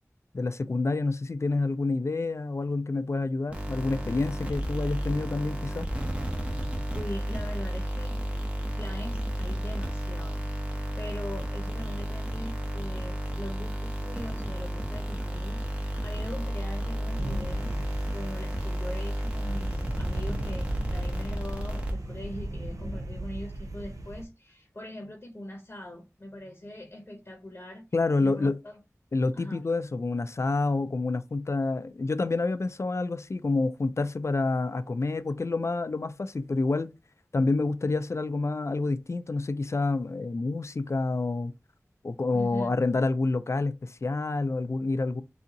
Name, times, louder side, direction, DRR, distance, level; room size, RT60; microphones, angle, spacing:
voice 1, 0.3-5.9 27.9-28.6 29.1-36.9 37.3-41.5 42.0-45.2, left 3 dB, 55° left, 0.4 m, -28 dB
sound 1, 3.5-22.3, equal, 20° right, 1.0 m, -32 dB
voice 2, 6.9-8.2 8.7-17.8 18.1-27.8 28.2-28.8 29.3-29.6 42.3-42.7, left 1 dB, 40° left, 0.8 m, -41 dB
sound 2, 17.1-24.3, right 1 dB, 75° right, 0.6 m, -37 dB
3.7 x 2.4 x 2.8 m
wide cardioid pair, 45°, 6 cm